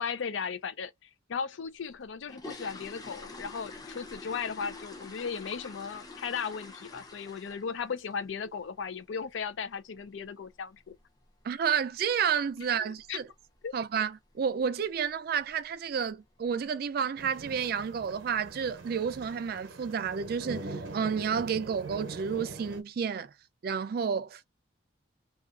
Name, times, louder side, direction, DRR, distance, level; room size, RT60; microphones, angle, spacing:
voice 1, 0.0-10.9 12.8-13.2 13.6-13.7, left 6 dB, 80° left, 0.4 m, -36 dB
sound 1, 1.9-7.8 8.1-8.4 8.7-8.8 9.2-9.3 9.7-9.9 10.2-10.3 10.9-11.0 11.2-11.4 11.9-12.2 12.5-12.6 13.0-13.2 13.5-13.6 14.0-14.1 14.8-15.1 15.4-15.7 16.1-16.2 16.6-16.7 17.5-17.6 18.0-18.5 19.0-19.1, left 3 dB, 20° left, 0.5 m, -46 dB
voice 2, 11.4-13.2 13.7-23.3 23.6-24.4, right 7 dB, 50° right, 0.3 m, -30 dB
sound 2, 17.2-22.8, right 3 dB, 85° right, 0.7 m, -42 dB
2.7 x 2.4 x 2.4 m
head